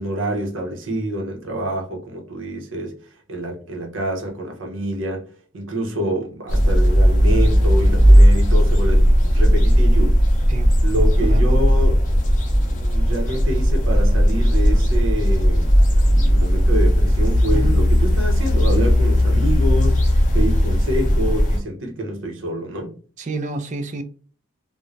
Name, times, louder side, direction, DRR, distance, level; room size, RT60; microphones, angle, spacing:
voice 1, 0.0-2.9 3.3-5.2 5.5-10.2 10.8-11.9 12.7-23.0, right 1 dB, 65° right, 0.7 m, -27 dB
sound 1, 6.5-21.6, equal, 35° left, 0.6 m, -16 dB
voice 2, 11.2-11.6 17.5-17.8 23.2-24.0, right 2 dB, 35° right, 0.3 m, -29 dB
2.5 x 2.1 x 3.1 m
head